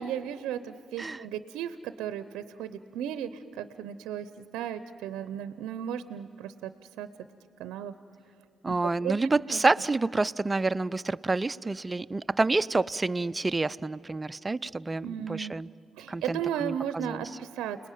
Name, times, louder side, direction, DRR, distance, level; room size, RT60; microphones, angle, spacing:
voice 1, 0.0-6.7 7.0-7.1 7.6-7.9 8.7-8.8 9.0-9.1 9.5-9.6 15.0-15.5 16.0-17.8, right 9 dB, 80° right, 12 dB, 0.7 m, -35 dB
voice 2, 8.6-15.7 16.1-17.3, right 3 dB, 25° right, 14 dB, 0.5 m, -28 dB
30.0 x 20.0 x 9.2 m, 2.6 s
supercardioid pair, 55°, 0 cm